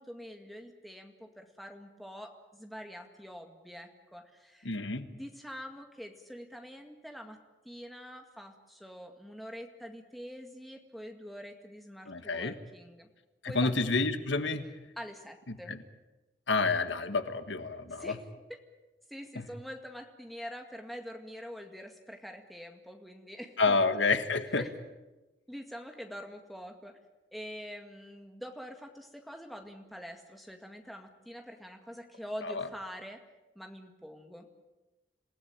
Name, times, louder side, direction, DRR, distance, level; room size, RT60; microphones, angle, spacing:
voice 1, 0.0-4.7 5.1-7.4 7.6-13.1 13.5-13.8 15.0-15.7 17.9-18.2 18.5-18.6 19.1-23.9 24.5-24.7 25.5-27.0 27.3-33.2 33.6-34.5, equal, ahead, 3 dB, 2.0 m, -45 dB
voice 2, 4.6-5.1 12.1-12.5 13.4-14.7 15.5-15.8 16.5-18.1 19.3-19.4 23.6-24.6 32.4-32.7, left 3 dB, 90° left, 10 dB, 1.6 m, -29 dB
27.5 x 17.0 x 8.8 m, 1.1 s
head